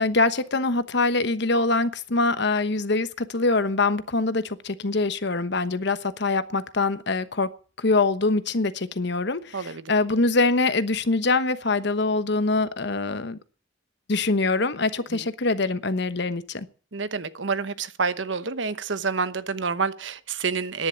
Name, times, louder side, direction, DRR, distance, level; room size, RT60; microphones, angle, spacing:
voice 1, 0.0-7.5 7.8-13.4 14.1-16.7, left 3 dB, 65° left, 1.1 m, -24 dB
voice 2, 9.5-9.9 15.1-15.3 16.9-20.9, right 5 dB, 70° right, 1.0 m, -28 dB
10.5 x 10.5 x 9.8 m
head